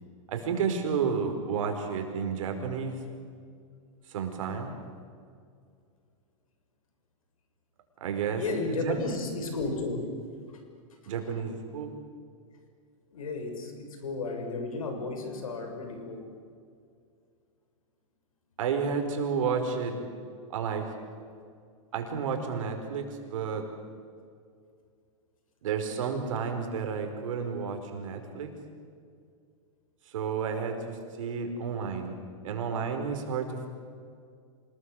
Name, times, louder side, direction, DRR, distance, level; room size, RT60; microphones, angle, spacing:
voice 1, 0.3-3.0 4.1-4.7 8.0-8.4 8.7-9.0 11.1-11.9 18.6-20.0 20.5-20.9 21.9-23.6 25.6-28.5 30.1-32.2 32.4-33.7, right 6 dB, 70° right, 5 dB, 5.1 m, -31 dB
voice 2, 8.3-10.0 10.5-10.6 11.0-11.1 13.1-16.2, left 3 dB, 85° left, 5 dB, 6.4 m, -33 dB
27.0 x 20.5 x 8.1 m, 2.3 s
hypercardioid pair, 125°, 17 cm